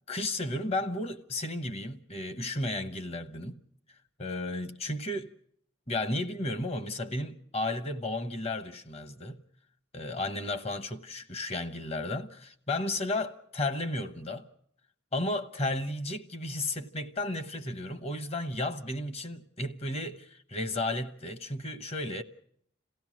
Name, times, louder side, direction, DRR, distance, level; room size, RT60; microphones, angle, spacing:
voice 1, 0.1-3.6 4.2-5.3 5.9-9.4 9.9-14.4 15.1-22.2, left 2 dB, 30° left, 1.0 m, -33 dB
27.5 x 16.5 x 6.2 m
head